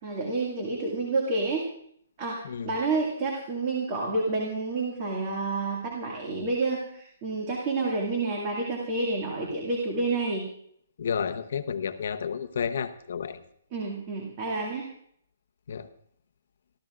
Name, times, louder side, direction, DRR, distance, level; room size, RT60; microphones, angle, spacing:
voice 1, 0.0-1.7 2.2-2.4 2.6-10.5 13.7-14.9, right 3 dB, 25° right, -1 dB, 2.2 m, -29 dB
voice 2, 11.0-13.4 15.7-15.9, left 7 dB, 60° left, 9 dB, 0.9 m, -31 dB
26.0 x 13.5 x 2.5 m, 0.66 s
hypercardioid pair, 170°, 0 cm